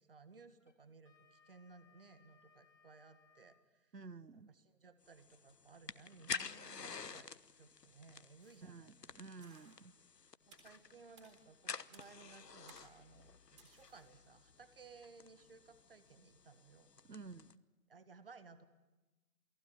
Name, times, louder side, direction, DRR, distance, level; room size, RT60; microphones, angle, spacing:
voice 1, 0.0-3.9 4.3-9.1 10.5-16.9 17.9-18.7, right 4 dB, 35° right, 12 dB, 1.6 m, -60 dB
Wind instrument woodwind instrument, 0.6-3.7, left 5 dB, 50° left, 2.8 m, -69 dB
voice 2, 3.9-4.5 8.6-9.9 17.0-17.6, right 4 dB, 80° right, 16 dB, 1.2 m, -52 dB
sound 1, 5.0-17.5, left 5 dB, 75° left, 1.1 m, -50 dB
sound 2, 8.4-8.8 9.4-9.8 10.5-10.8 11.2-11.3 11.9-12.2 12.7-13.0 13.6-14.1, right 4 dB, 20° right, 3.6 m, -63 dB
28.5 x 19.0 x 9.2 m, 1.1 s
figure-of-eight pair, 160°, 49 cm